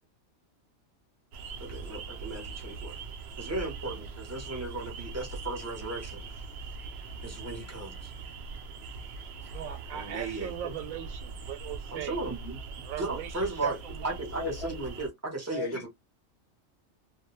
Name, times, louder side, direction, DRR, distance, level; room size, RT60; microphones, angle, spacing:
sound 1, 1.3-15.1, right 4 dB, 65° right, 0.7 m, -42 dB
voice 1, 1.6-3.0 3.4-6.2 7.2-8.1 9.9-10.8 11.9-12.6 13.0-13.8 14.0-15.9, right 2 dB, 20° right, 0.5 m, -36 dB
voice 2, 9.5-12.2 12.8-14.2, right 10 dB, 85° right, 1.0 m, -39 dB
voice 3, 14.4-14.7 15.5-15.9, left 4 dB, 65° left, 0.7 m, -35 dB
2.3 x 2.1 x 2.9 m
omnidirectional pair, 1.4 m